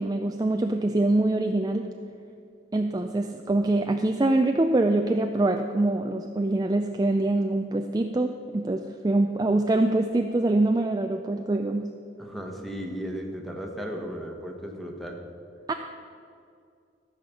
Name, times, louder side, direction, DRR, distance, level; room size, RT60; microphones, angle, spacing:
voice 1, 0.0-1.9 2.7-11.9 15.7-15.8, right 2 dB, 20° right, 5 dB, 0.3 m, -24 dB
voice 2, 12.2-15.2, equal, ahead, 1 dB, 1.2 m, -35 dB
14.0 x 5.7 x 6.9 m, 2.4 s
head